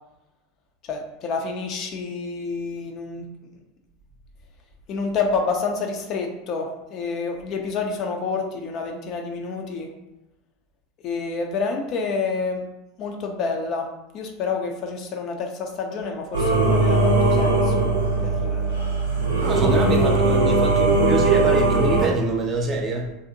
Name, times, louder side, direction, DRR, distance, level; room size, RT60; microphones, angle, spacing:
voice 1, 0.9-3.3 4.9-9.9 11.0-12.6 13.0-13.9 14.1-17.9 18.2-18.8 19.6-20.4, left 4 dB, 45° left, 2 dB, 0.4 m, -28 dB
Singing / Musical instrument, 16.3-22.0, right 2 dB, 80° right, 0.5 m, -20 dB
voice 2, 19.4-23.1, right 3 dB, 35° right, 1 dB, 0.5 m, -24 dB
2.6 x 2.0 x 2.6 m, 0.96 s
figure-of-eight pair, 80°, 0 cm